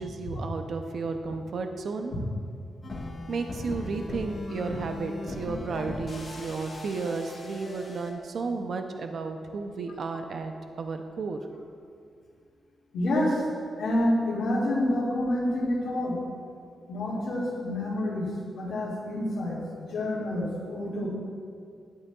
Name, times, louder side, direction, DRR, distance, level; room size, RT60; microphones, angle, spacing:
voice 1, 0.0-2.1 3.3-11.4, right 4 dB, 55° right, 5 dB, 0.5 m, -33 dB
sound 1, 2.8-8.1, left 2 dB, 35° left, 1.3 m, -38 dB
voice 2, 12.9-13.4 13.8-16.2 16.9-21.1, left 1 dB, 75° left, -12 dB, 2.2 m, -28 dB
11.5 x 8.3 x 2.3 m, 2.3 s
wide cardioid pair, 150°, 0 cm